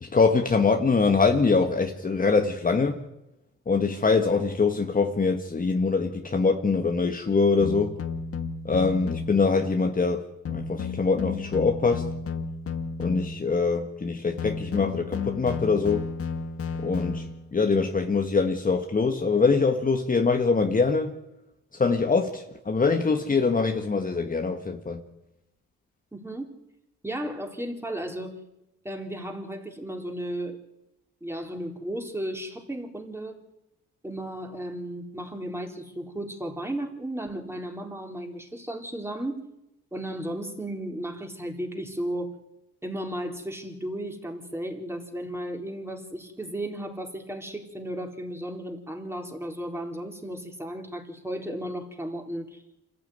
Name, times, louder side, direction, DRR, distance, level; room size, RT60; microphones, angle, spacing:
voice 1, 0.0-3.0 3.7-8.0 8.7-10.2 10.5-12.1 13.0-16.1 16.8-17.3 17.5-21.1 21.7-25.0, left 4 dB, 25° left, 1.7 m, -23 dB
sound 1, 7.6-9.5 10.5-13.6 14.4-17.5, left 5 dB, 50° left, 2.0 m, -33 dB
voice 2, 26.1-26.6 27.0-28.3 28.8-30.6 31.2-33.4 34.0-39.5 39.9-42.4 42.8-52.6, right 1 dB, 10° right, 4.0 m, -34 dB
26.5 x 14.5 x 9.5 m
cardioid pair, 90°, 30 cm